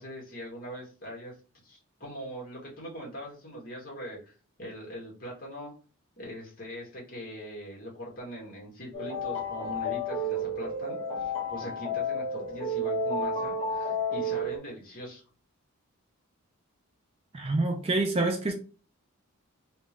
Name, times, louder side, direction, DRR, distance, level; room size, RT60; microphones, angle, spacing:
voice 1, 0.0-1.3 1.6-4.3 4.6-5.8 6.2-15.2, equal, 40° left, 1.8 m, -41 dB
sound 1, 8.9-14.6, left 1 dB, 25° left, 1.4 m, -31 dB
voice 2, 17.3-18.5, right 2 dB, 25° right, 0.4 m, -27 dB
3.4 x 3.2 x 3.1 m
head